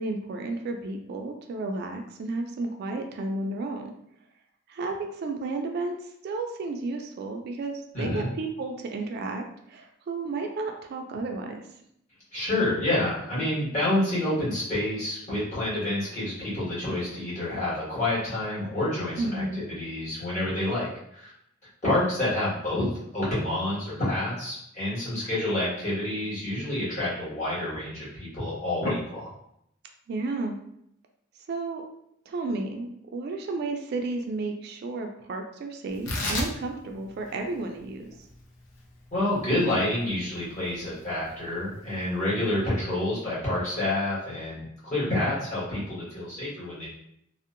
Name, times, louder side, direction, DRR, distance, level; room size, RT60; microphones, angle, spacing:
voice 1, 0.0-3.9 4.7-6.0 6.2-9.4 9.7-11.6 19.2-19.7 30.1-30.6 31.5-31.8 32.3-38.1, right 3 dB, 55° right, 4 dB, 0.3 m, -32 dB
voice 2, 7.9-8.3 12.3-21.3 21.8-29.3 39.1-46.9, left 1 dB, 40° left, -10 dB, 1.4 m, -28 dB
Tearing, 35.9-42.6, left 2 dB, 85° left, 0.6 m, -37 dB
2.7 x 2.1 x 2.4 m, 0.74 s
head